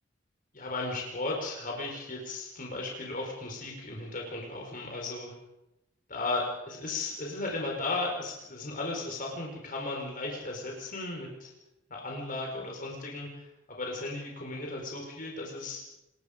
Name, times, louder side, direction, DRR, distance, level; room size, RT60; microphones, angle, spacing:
voice 1, 0.5-5.3 6.1-11.5 11.9-15.9, left 2 dB, 45° left, 0 dB, 4.9 m, -35 dB
27.0 x 21.0 x 5.3 m, 0.90 s
head